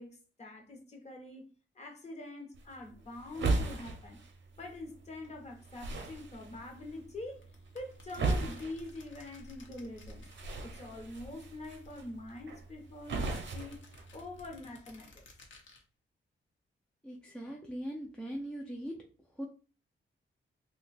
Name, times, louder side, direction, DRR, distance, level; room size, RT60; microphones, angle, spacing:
voice 1, 0.0-1.5 1.8-4.2 4.6-7.4 7.7-10.3 10.6-13.8 14.1-15.2, left 2 dB, 35° left, 0.8 m, -45 dB
sound 1, 2.5-14.6, right 3 dB, 65° right, 0.6 m, -38 dB
sound 2, 7.3-11.1 11.4-12.5 13.1-15.8, left 3 dB, 70° left, 0.8 m, -58 dB
voice 2, 17.0-19.0 19.3-19.5, equal, 5° left, 0.4 m, -40 dB
2.7 x 2.2 x 4.0 m
wide cardioid pair, 165°, 21 cm